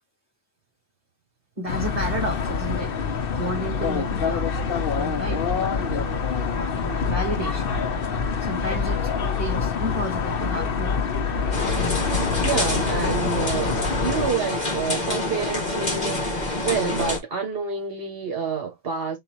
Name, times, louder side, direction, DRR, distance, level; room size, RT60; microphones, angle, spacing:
voice 1, 1.6-4.5 5.0-6.2 6.5-7.7 8.4-9.0 9.4-11.0, equal, 30° right, 1.9 m, -32 dB
sound 1, 1.7-14.3, left 5 dB, 60° left, 1.0 m, -26 dB
sound 2, 11.5-17.2, left 2 dB, 40° left, 2.0 m, -27 dB
voice 2, 12.4-19.2, right 5 dB, 60° right, 1.3 m, -28 dB
4.3 x 3.8 x 3.0 m
omnidirectional pair, 1.1 m